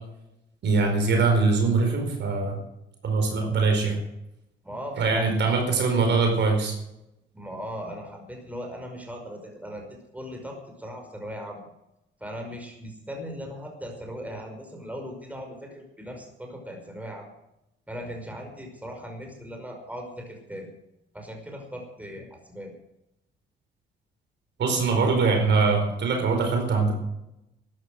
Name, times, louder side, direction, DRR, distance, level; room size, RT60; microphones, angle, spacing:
voice 1, 0.6-2.6 3.0-4.0 5.0-6.7 24.6-26.9, right 4 dB, 65° right, 3 dB, 4.9 m, -22 dB
voice 2, 4.6-5.6 7.3-9.9 10.1-11.7 12.2-17.3 17.9-20.7 21.1-22.7, equal, 5° right, 2 dB, 5.3 m, -38 dB
13.5 x 11.0 x 7.7 m, 0.86 s
cardioid pair, 90°, 20 cm